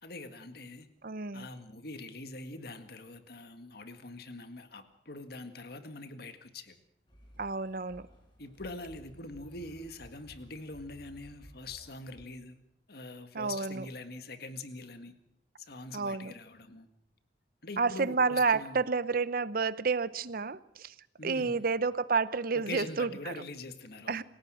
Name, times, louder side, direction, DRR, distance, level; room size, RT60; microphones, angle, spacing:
voice 1, 0.0-0.9 1.3-6.8 8.4-12.6 12.9-15.1 15.6-16.9 17.6-18.8 21.2-21.7 22.5-24.2, left 2 dB, 60° left, 9 dB, 1.9 m, -44 dB
voice 2, 1.0-1.5 7.4-8.0 13.3-13.9 15.9-16.3 17.8-20.9 21.2-23.3 24.1-24.2, right 4 dB, 55° right, 17 dB, 0.8 m, -30 dB
sound 1, 7.1-12.3, equal, 25° left, 5.5 m, -55 dB
27.5 x 17.0 x 6.4 m, 0.79 s
head